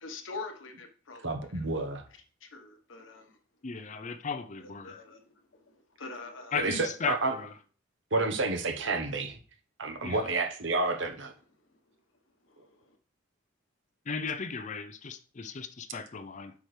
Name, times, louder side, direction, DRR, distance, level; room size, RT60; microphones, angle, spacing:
voice 1, 0.0-1.3 2.4-3.4 4.6-5.2 5.5-6.6 12.5-13.0, left 3 dB, 80° left, 1.2 m, -44 dB
voice 2, 1.2-2.0 6.5-7.3 8.1-9.4 9.8-11.3, right 3 dB, 65° right, 1.1 m, -30 dB
voice 3, 3.6-5.0 6.5-7.5 10.0-10.3 14.1-16.5, left 5 dB, 40° left, 0.5 m, -36 dB
8.5 x 6.0 x 3.3 m
head